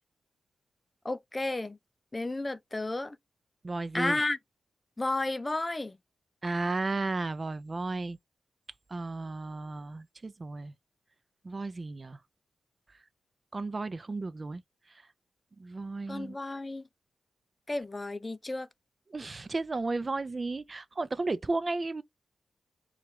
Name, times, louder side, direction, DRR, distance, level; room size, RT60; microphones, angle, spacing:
voice 1, 1.0-1.8 2.1-3.2 3.9-4.4 5.0-6.0 16.1-16.8 17.7-18.7, left 2 dB, 20° left, 0.5 m, -32 dB
voice 2, 3.6-4.2 6.4-8.2 8.9-10.7 11.4-12.2 13.5-14.6 15.6-16.4 19.1-22.0, right 3 dB, 35° right, 0.4 m, -33 dB
4.5 x 2.4 x 3.2 m
cardioid pair, 75°, 0 cm